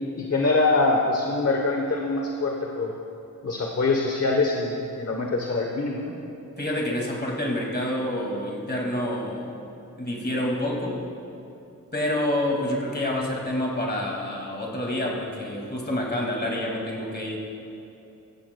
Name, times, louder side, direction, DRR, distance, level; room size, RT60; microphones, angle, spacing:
voice 1, 0.2-2.9 3.4-6.1, left 3 dB, 45° left, 0 dB, 0.9 m, -24 dB
voice 2, 6.6-9.5 10.0-11.0 11.9-17.4, left 1 dB, 30° left, -2 dB, 2.1 m, -28 dB
15.5 x 14.5 x 2.2 m, 2.8 s
wide cardioid pair, 105°, 35 cm